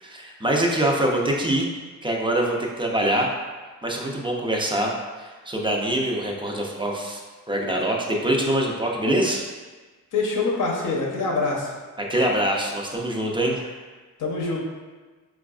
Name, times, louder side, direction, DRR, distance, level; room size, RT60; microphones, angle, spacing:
voice 1, 0.0-1.7 2.0-3.3 3.8-4.9 5.2-7.2 7.5-9.4 12.1-13.7, right 1 dB, 15° right, -1 dB, 0.5 m, -24 dB
voice 2, 10.1-11.7 14.2-14.6, left 3 dB, 60° left, -2 dB, 0.8 m, -25 dB
4.4 x 2.4 x 2.4 m, 1.4 s
cardioid pair, 80°, 35 cm